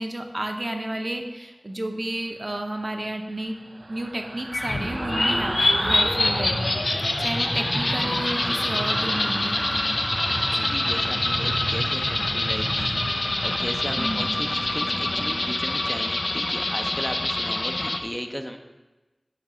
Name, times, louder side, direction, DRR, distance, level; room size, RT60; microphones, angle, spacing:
voice 1, 0.0-3.6 3.9-9.9 10.5-10.7 13.9-14.3, right 1 dB, 55° right, 4 dB, 0.7 m, -32 dB
sound 1, 2.7-16.0 16.4-16.6, right 2 dB, 75° right, 0.3 m, -34 dB
sound 2, 4.5-18.0, left 2 dB, 85° left, 0.5 m, -25 dB
voice 2, 10.7-18.6, equal, 10° left, 5 dB, 0.6 m, -35 dB
8.5 x 3.2 x 6.0 m, 1.1 s
wide cardioid pair, 45°, 0 cm